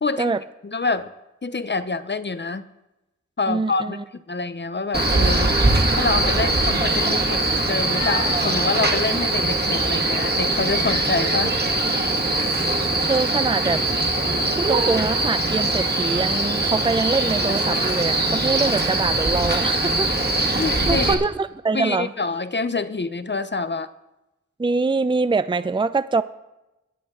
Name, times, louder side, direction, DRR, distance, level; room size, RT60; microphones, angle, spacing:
voice 1, 0.0-0.3 0.6-1.1 1.4-2.6 3.4-4.0 4.3-5.6 6.0-11.6 20.6-21.2 21.7-23.9, left 3 dB, 35° left, 12 dB, 0.8 m, -26 dB
voice 2, 3.5-4.0 12.6-13.8 14.6-20.1 20.4-22.1 24.6-26.2, right 4 dB, 15° right, 14 dB, 0.5 m, -24 dB
Male speech man speaking, 4.9-21.1, right 2 dB, 35° right, 2.0 m, -21 dB
21.0 x 8.5 x 3.8 m, 0.94 s
cardioid pair, 55°, 30 cm